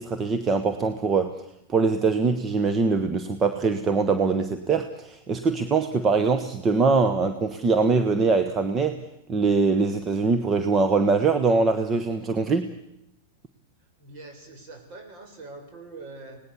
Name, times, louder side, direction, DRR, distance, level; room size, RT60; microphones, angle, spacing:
voice 1, 0.0-1.4 1.7-9.0 9.3-12.7, right 4 dB, 25° right, 9 dB, 1.3 m, -23 dB
voice 2, 14.0-16.4, right 3 dB, 50° right, 4 dB, 7.4 m, -43 dB
25.5 x 19.0 x 7.3 m, 0.82 s
hypercardioid pair, 110°, 0 cm